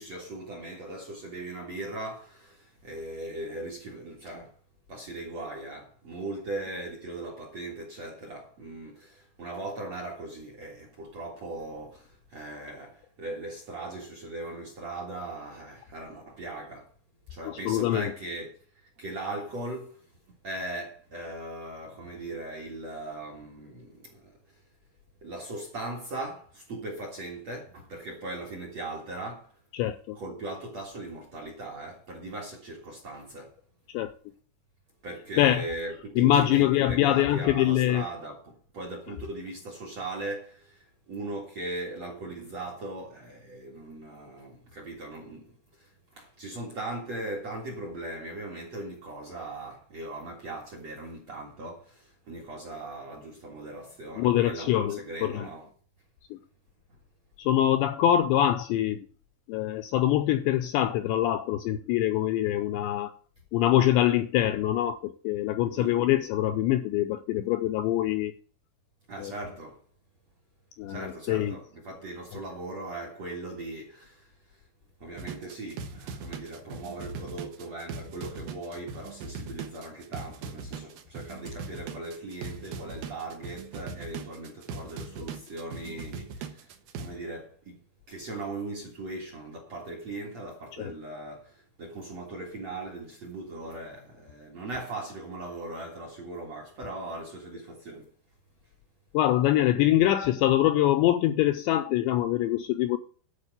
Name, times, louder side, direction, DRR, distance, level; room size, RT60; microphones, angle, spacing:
voice 1, 0.0-4.6 4.9-16.9 17.3-20.0 20.4-24.4 25.2-29.6 30.2-33.6 35.0-55.7 65.8-65.9 69.1-69.8 70.9-74.6 75.0-86.7 87.0-87.8 88.1-98.1, right 2 dB, 55° right, 1.9 m, -39 dB
voice 2, 17.5-18.0 29.8-30.2 33.9-34.1 35.4-35.6 36.2-38.0 54.2-55.5 57.4-59.0 59.5-63.1 63.5-68.3 69.2-69.3 70.8-71.6 90.8-90.9 99.1-103.0, left 12 dB, 85° left, 2.6 m, -24 dB
sound 1, 75.1-87.1, right 5 dB, 70° right, 2.3 m, -40 dB
11.5 x 4.8 x 8.2 m
omnidirectional pair, 5.7 m